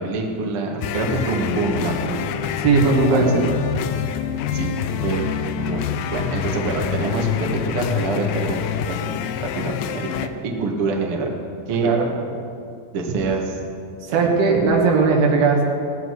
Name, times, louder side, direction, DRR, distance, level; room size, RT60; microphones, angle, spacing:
voice 1, 0.0-2.5 3.1-3.4 4.5-4.7 5.0-5.2 5.5-5.8 6.1-8.6 8.8-10.1 10.4-11.3 11.7-11.9 12.9-13.6 14.1-14.4, right 4 dB, 60° right, 0 dB, 1.5 m, -26 dB
sound 1, 0.8-10.3, left 8 dB, 85° left, 2.9 m, -26 dB
voice 2, 2.6-3.4 11.8-12.1 14.1-15.6, right 4 dB, 85° right, -1 dB, 4.4 m, -17 dB
18.0 x 14.5 x 4.8 m, 2.4 s
omnidirectional pair, 5.3 m